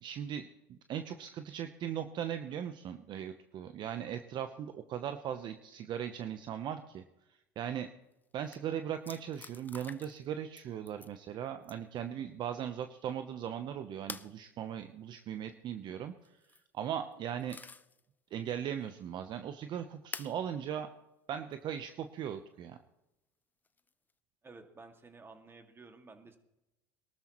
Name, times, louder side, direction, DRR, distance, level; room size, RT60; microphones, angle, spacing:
voice 1, 0.0-7.0 7.6-7.9 8.3-16.1 16.7-17.6 18.3-20.9 21.3-22.8, right 9 dB, 50° right, 8 dB, 0.9 m, -38 dB
sound 1, 8.1-8.2 8.4-8.6 9.0-10.3 10.6-11.1 11.6-12.0 14.1-14.3 16.2-16.6 17.1-18.0 18.5-18.6 20.1-20.4 21.5-21.6 23.6-24.1, left 4 dB, 20° left, 0.6 m, -47 dB
voice 2, 24.4-26.4, right 3 dB, 25° right, 5 dB, 2.2 m, -53 dB
22.5 x 13.0 x 3.1 m, 0.94 s
hypercardioid pair, 80°, 10 cm